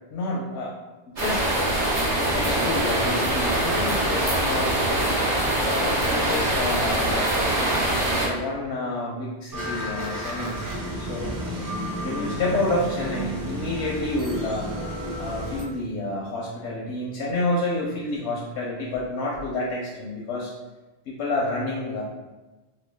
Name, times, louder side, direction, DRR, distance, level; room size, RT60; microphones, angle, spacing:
voice 1, 0.1-0.7 1.1-1.5 2.1-4.8 5.5-7.3 8.2-10.7 11.0-11.7 12.0-14.7 15.2-20.5 21.1-22.0, left 2 dB, 90° left, -4 dB, 0.9 m, -29 dB
sound 1, 1.2-8.3, right 1 dB, 50° right, 1.0 m, -23 dB
sound 2, 6.0-6.8 10.0-10.8, right 2 dB, 85° right, 0.9 m, -42 dB
sound 3, 9.5-15.6, right 1 dB, 30° right, 0.4 m, -32 dB
2.9 x 2.2 x 3.3 m, 1.2 s
omnidirectional pair, 1.1 m